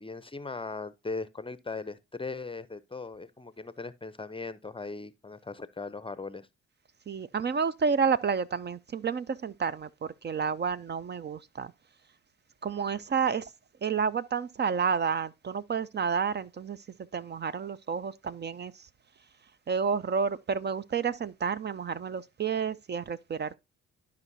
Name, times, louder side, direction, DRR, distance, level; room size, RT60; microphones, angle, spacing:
voice 1, 0.0-6.5, left 3 dB, 15° left, 0.6 m, -39 dB
voice 2, 7.1-11.7 12.6-13.5 13.8-16.8 17.1-18.9 19.7-23.6, right 6 dB, 30° right, 0.5 m, -30 dB
12.5 x 5.2 x 2.7 m
hypercardioid pair, 45°, 33 cm